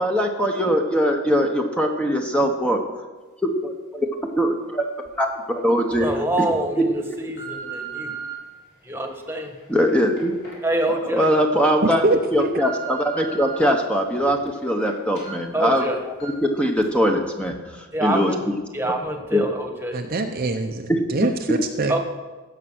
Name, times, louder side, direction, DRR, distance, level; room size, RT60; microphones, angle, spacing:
voice 1, 0.0-2.8 3.6-4.9 5.2-6.1 9.7-10.3 10.9-12.1 12.3-18.6 19.3-19.5 20.9-21.0, equal, 5° left, 3 dB, 0.9 m, -22 dB
sound 1, 5.0-5.1 5.8-6.1 6.7-8.3 9.0-11.3 11.7-11.8 12.3-13.6 14.0-14.9 15.1-15.3 15.7-15.8 16.2-16.5 16.8-16.9, right 6 dB, 50° left, 4.7 m, -38 dB
voice 2, 5.9-8.1 8.8-9.5 10.6-11.3 15.5-16.0 17.9-18.4 18.7-20.0 21.9-22.0, right 1 dB, 10° right, 4 dB, 1.4 m, -26 dB
voice 3, 11.8-12.5 19.9-22.0, right 2 dB, 40° right, 5 dB, 0.7 m, -24 dB
16.0 x 6.7 x 6.2 m, 1.3 s
head